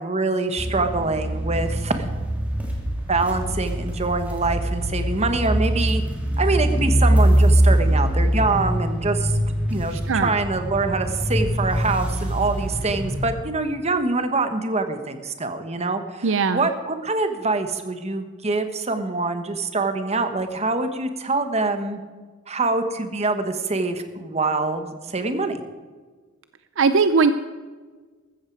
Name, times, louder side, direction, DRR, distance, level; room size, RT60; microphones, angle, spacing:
voice 1, 0.0-2.1 3.1-6.0 6.4-9.3 9.7-22.0 22.5-25.6, right 3 dB, 30° right, 7 dB, 1.3 m, -25 dB
sound 1, 0.6-13.3, right 1 dB, 5° right, 2.9 m, -23 dB
voice 2, 9.9-10.3 16.2-16.7 26.8-27.3, right 4 dB, 65° right, 11 dB, 0.6 m, -19 dB
15.0 x 14.0 x 4.7 m, 1.4 s
head